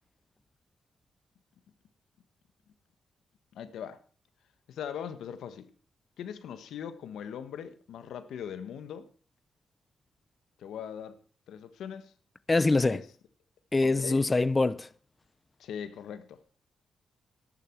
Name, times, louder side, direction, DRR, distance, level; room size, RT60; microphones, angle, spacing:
voice 1, 3.5-4.0 4.7-5.7 6.2-9.1 10.6-11.2 11.5-12.1 12.9-13.0 13.8-14.2 15.6-16.4, left 8 dB, 85° left, 1.3 m, -40 dB
voice 2, 12.5-13.0 13.7-14.9, left 3 dB, 25° left, 0.5 m, -24 dB
12.5 x 11.5 x 4.5 m
cardioid pair, 75°, 0 cm